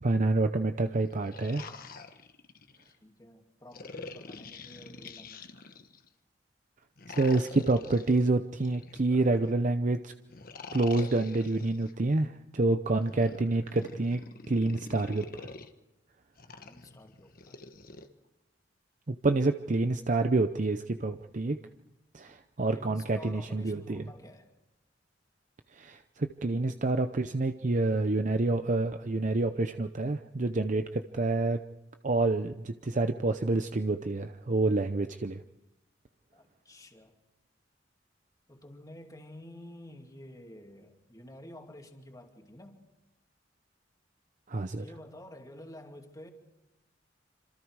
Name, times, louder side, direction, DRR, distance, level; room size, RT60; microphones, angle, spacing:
voice 1, 0.0-1.7 7.1-10.1 10.7-14.2 14.5-15.5 19.1-21.6 22.1-24.1 25.7-31.6 32.0-35.4 44.5-44.8, right 2 dB, 45° right, 8 dB, 0.7 m, -28 dB
sound 1, 1.0-2.9 3.7-6.1 7.0-9.5 10.3-11.9 12.9-15.7 16.4-18.1, left 4 dB, 50° left, 1.3 m, -46 dB
voice 2, 2.9-5.6 16.6-17.6 22.7-24.5 36.3-37.1 38.5-42.8 44.7-46.3, left 1 dB, 20° left, 3 dB, 2.5 m, -50 dB
27.0 x 26.5 x 4.8 m, 0.96 s
head